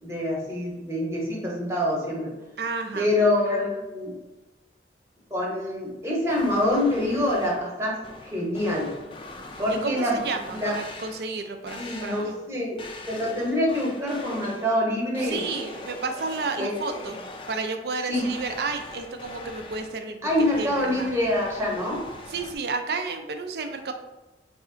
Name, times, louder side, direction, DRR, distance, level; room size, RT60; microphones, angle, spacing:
voice 1, 0.0-2.3 2.9-4.1 5.3-8.9 9.6-10.2 10.5-10.8 11.7-12.8 13.1-15.4 16.6-16.7 18.1-18.3 20.2-22.0, left 1 dB, 15° right, -3 dB, 0.9 m, -25 dB
voice 2, 2.6-3.1 9.8-12.4 15.2-20.2 20.6-21.1 22.3-23.9, right 4 dB, 60° right, 6 dB, 0.4 m, -31 dB
sound 1, 6.3-7.7 8.0-11.4 11.7-12.4 12.8-14.8 15.1-17.9 18.1-22.6, left 2 dB, 30° left, 0.3 m, -42 dB
4.1 x 2.4 x 3.7 m, 1.1 s
head